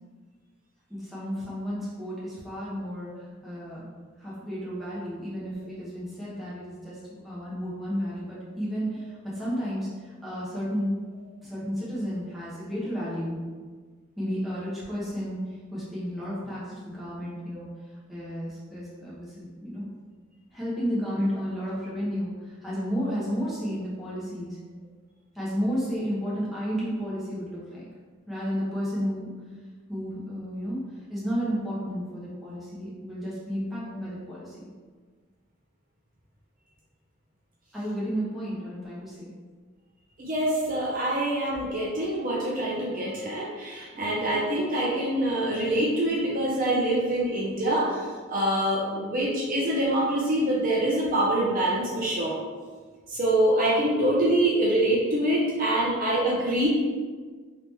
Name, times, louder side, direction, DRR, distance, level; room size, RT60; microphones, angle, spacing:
voice 1, 0.9-3.8 4.2-11.0 11.4-13.4 14.2-17.7 18.1-19.9 20.5-24.6 25.3-27.9 28.3-29.3 29.9-30.8 31.1-34.7 37.7-39.3 43.8-44.0, equal, ahead, -9 dB, 1.0 m, -32 dB
voice 2, 40.2-48.0 48.3-52.4 53.1-56.7, right 1 dB, 40° right, -5 dB, 0.6 m, -25 dB
2.9 x 2.9 x 3.3 m, 1.5 s
head